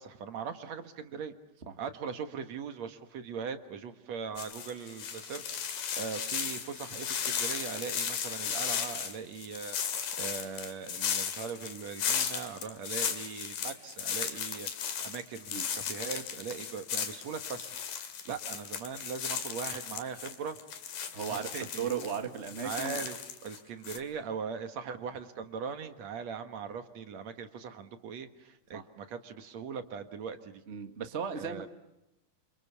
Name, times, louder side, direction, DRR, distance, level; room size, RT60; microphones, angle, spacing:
voice 1, 0.0-1.3 1.8-5.5 5.9-9.8 10.2-17.9 18.3-20.6 21.3-21.9 22.6-23.2 23.4-30.6 31.3-31.7, right 6 dB, 60° right, 8 dB, 2.5 m, -40 dB
sound 1, 4.4-23.6 23.8-24.0, left 8 dB, 75° left, 3.8 m, -36 dB
voice 2, 21.1-21.5 21.8-23.0 28.7-28.8 30.7-31.7, right 7 dB, 35° right, 7 dB, 1.2 m, -35 dB
28.0 x 27.5 x 7.0 m, 0.93 s
omnidirectional pair, 3.9 m